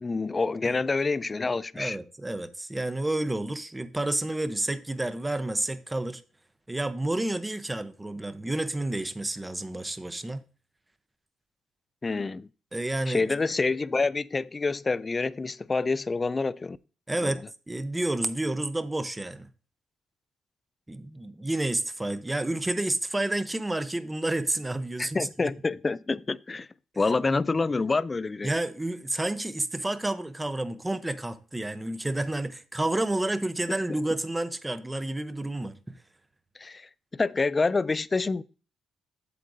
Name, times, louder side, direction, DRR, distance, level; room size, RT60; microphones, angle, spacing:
voice 1, 0.0-2.0 12.0-12.5 13.1-16.8 17.2-17.3 25.0-26.7 27.0-28.5 33.9-34.0 36.6-38.4, left 3 dB, 25° left, 0.3 m, -27 dB
voice 2, 1.8-6.2 6.7-10.4 12.7-13.3 17.1-19.5 20.9-25.5 28.4-35.8, right 1 dB, 15° right, 0.7 m, -30 dB
8.4 x 7.5 x 2.6 m
cardioid pair, 90°, 0 cm